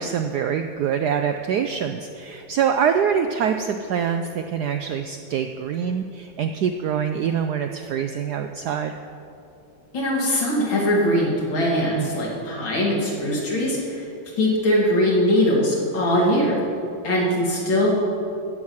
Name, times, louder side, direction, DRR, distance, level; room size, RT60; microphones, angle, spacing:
voice 1, 0.0-8.9 11.9-12.1, right 7 dB, 75° right, 7 dB, 0.9 m, -25 dB
voice 2, 9.9-14.1 14.4-16.5 17.0-17.9, equal, 70° left, -3 dB, 3.2 m, -21 dB
15.0 x 6.1 x 7.2 m, 2.6 s
omnidirectional pair, 2.2 m